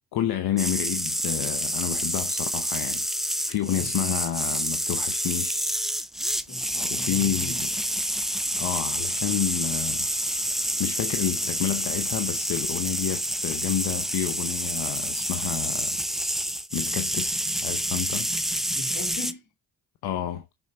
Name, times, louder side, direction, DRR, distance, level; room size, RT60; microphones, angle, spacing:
voice 1, 0.1-3.1 3.5-5.6 6.8-7.8 8.6-10.1 10.8-16.0 16.7-18.3 20.0-20.4, left 11 dB, 75° left, 0.8 m, -30 dB
sound 1, 0.6-19.3, equal, ahead, 0.5 m, -28 dB
voice 2, 6.5-7.6 18.7-19.4, left 4 dB, 50° left, 1.7 m, -39 dB
6.4 x 4.1 x 4.3 m
supercardioid pair, 50°, 38 cm